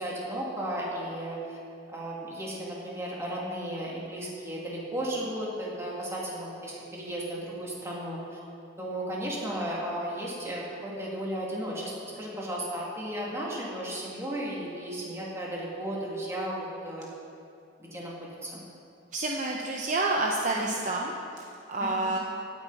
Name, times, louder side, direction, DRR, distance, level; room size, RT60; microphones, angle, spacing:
voice 1, 0.0-1.6 1.9-8.4 8.8-17.1 17.8-18.6 20.5-20.8 21.8-22.1, right 1 dB, 15° right, -5 dB, 2.5 m, -35 dB
voice 2, 19.1-22.2, right 2 dB, 40° right, -1 dB, 0.8 m, -29 dB
16.5 x 9.2 x 4.1 m, 2.6 s
head